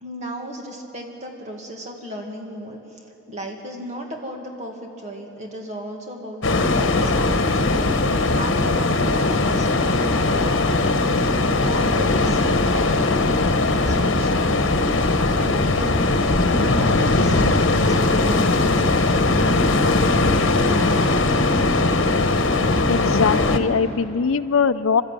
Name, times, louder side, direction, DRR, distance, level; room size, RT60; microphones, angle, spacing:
voice 1, 0.0-2.8 3.3-8.0 8.4-10.7 11.5-14.8 15.3-19.1, equal, 35° right, 1 dB, 2.1 m, -35 dB
sound 1, 6.4-23.6, left 2 dB, 70° left, 1.2 m, -19 dB
voice 2, 22.9-25.0, left 5 dB, 85° left, 13 dB, 0.6 m, -21 dB
26.0 x 13.0 x 9.0 m, 2.9 s
head